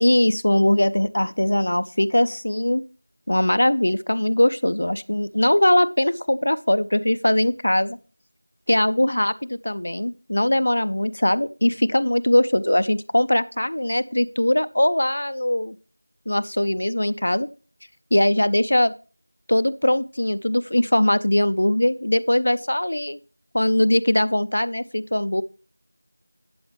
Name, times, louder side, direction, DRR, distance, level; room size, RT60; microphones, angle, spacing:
voice 1, 0.0-2.8 3.3-8.0 8.7-15.7 16.3-17.5 18.1-18.9 19.5-23.2 23.5-25.4, left 1 dB, 55° left, 14 dB, 0.5 m, -21 dB
11.5 x 7.9 x 3.3 m, 0.35 s
figure-of-eight pair, 175°, 0 cm